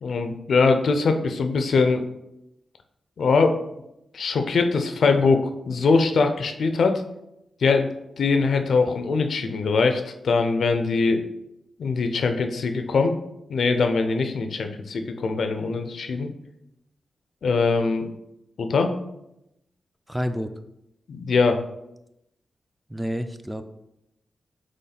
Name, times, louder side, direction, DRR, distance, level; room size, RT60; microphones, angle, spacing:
voice 1, 0.0-2.1 3.2-3.6 4.1-7.0 7.6-7.9 8.2-11.2 11.8-13.2 13.5-16.3 17.4-18.1 18.6-18.9 21.1-21.6, left 4 dB, 75° left, 7 dB, 0.4 m, -22 dB
voice 2, 20.1-20.5 22.9-23.6, equal, 10° right, 8 dB, 0.3 m, -28 dB
4.2 x 3.1 x 4.0 m, 0.84 s
cardioid pair, 80°, 0 cm